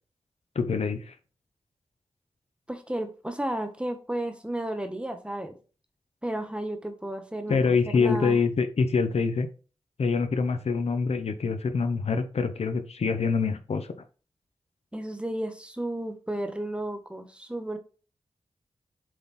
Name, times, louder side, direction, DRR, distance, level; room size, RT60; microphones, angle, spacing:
voice 1, 0.5-1.1 7.5-9.5 10.0-13.9, left 5 dB, 70° left, 0.8 m, -25 dB
voice 2, 2.7-5.5 6.2-8.4 14.9-17.8, right 1 dB, 10° right, 1.3 m, -33 dB
7.5 x 3.8 x 4.2 m
wide cardioid pair, 70°, 11 cm